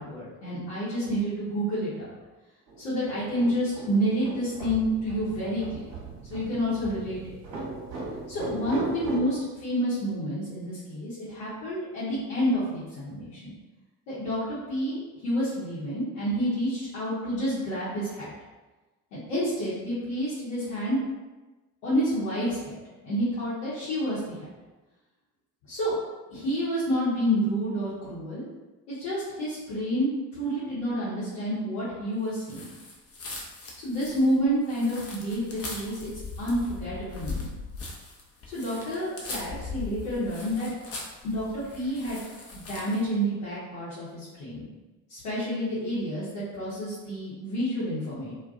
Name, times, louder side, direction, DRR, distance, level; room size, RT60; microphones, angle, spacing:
voice 1, 0.0-2.1 2.8-5.9 6.3-7.3 8.3-13.5 14.1-18.3 19.1-21.0 21.8-22.8 23.0-24.5 25.7-26.0 26.3-28.5 28.9-30.1 30.4-32.7 33.8-36.1 36.4-37.5 38.5-40.7 41.2-42.2 42.5-44.7 45.1-48.3, equal, 65° left, -11 dB, 0.9 m, -29 dB
sound 1, 2.7-9.2, right 3 dB, 45° right, 0.9 m, -38 dB
sound 2, 32.4-43.1, left 3 dB, 30° left, 0.6 m, -40 dB
2.2 x 2.2 x 2.6 m, 1.2 s
figure-of-eight pair, 45°, 49 cm